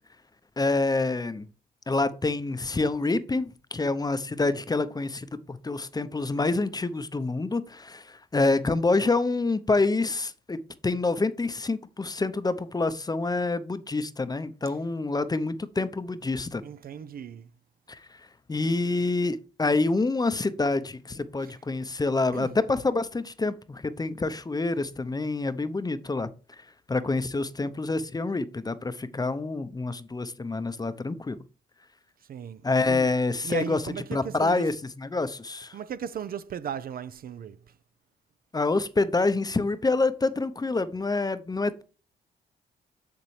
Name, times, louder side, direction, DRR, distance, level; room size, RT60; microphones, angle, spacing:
voice 1, 0.6-1.5 1.9-16.6 17.9-26.3 26.9-31.4 32.6-33.8 34.1-34.7 35.0-35.8 38.5-41.8, left 3 dB, 20° left, 0.7 m, -27 dB
voice 2, 16.6-17.5 21.4-21.5 22.3-22.6 32.3-33.1 33.4-34.7 35.7-37.6, right 8 dB, 55° right, 0.5 m, -36 dB
6.9 x 6.8 x 3.2 m
supercardioid pair, 60°, 18 cm